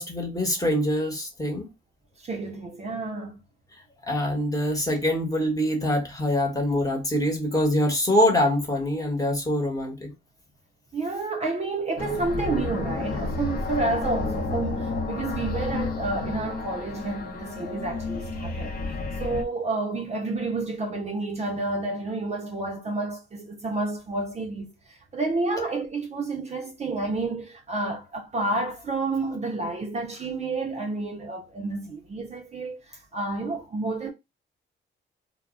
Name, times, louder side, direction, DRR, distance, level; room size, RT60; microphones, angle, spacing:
voice 1, 0.0-1.7 4.1-10.1 25.6-25.7, left 1 dB, 15° left, 1.1 m, -24 dB
voice 2, 2.2-3.4 10.9-18.8 19.2-34.1, right 3 dB, 35° right, 0.5 m, -30 dB
sound 1, 12.0-19.4, left 3 dB, 50° left, 0.8 m, -31 dB
2.2 x 2.0 x 3.5 m
cardioid pair, 90°, 20 cm